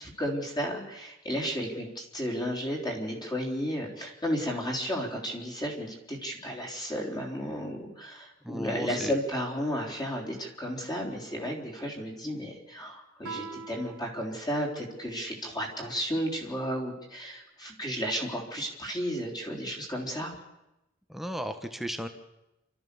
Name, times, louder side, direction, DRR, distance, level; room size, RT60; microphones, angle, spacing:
voice 1, 0.0-20.3, equal, 20° left, 0 dB, 3.9 m, -33 dB
voice 2, 8.4-9.1 21.1-22.1, equal, ahead, 7 dB, 1.2 m, -35 dB
Guitar, 13.2-15.7, right 5 dB, 80° right, 1.7 m, -45 dB
28.5 x 13.5 x 7.0 m, 0.94 s
head